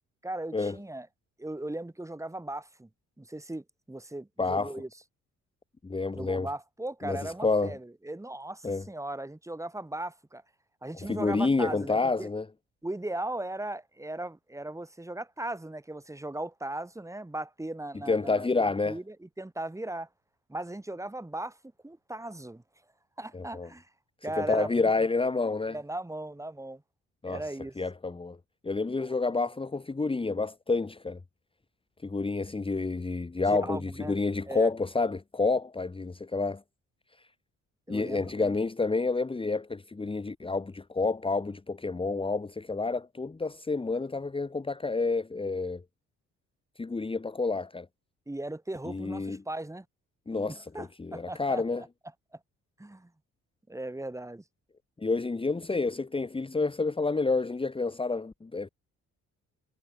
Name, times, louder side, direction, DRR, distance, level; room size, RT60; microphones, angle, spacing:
voice 1, 0.2-1.1 1.4-2.9 3.2-4.9 6.1-10.4 10.8-12.3 12.8-20.1 20.5-21.6 21.8-22.6 23.2-23.9 24.2-24.9 25.7-26.8 27.3-27.7 29.0-29.1 33.6-34.2 34.5-34.7 37.9-38.6 48.3-49.9 50.5-51.9 52.3-52.4 52.8-53.1 53.7-54.4, right 1 dB, 10° right, 2.6 m, -38 dB
voice 2, 4.4-4.7 5.8-6.5 7.0-7.8 8.6-8.8 11.0-12.5 18.1-19.0 23.3-23.7 24.4-25.8 27.2-27.4 27.8-28.4 28.6-31.2 32.0-36.6 37.9-45.8 46.8-47.9 48.9-49.4 50.3-51.8 55.0-58.7, left 3 dB, 15° left, 1.4 m, -29 dB
cardioid pair, 90°, 30 cm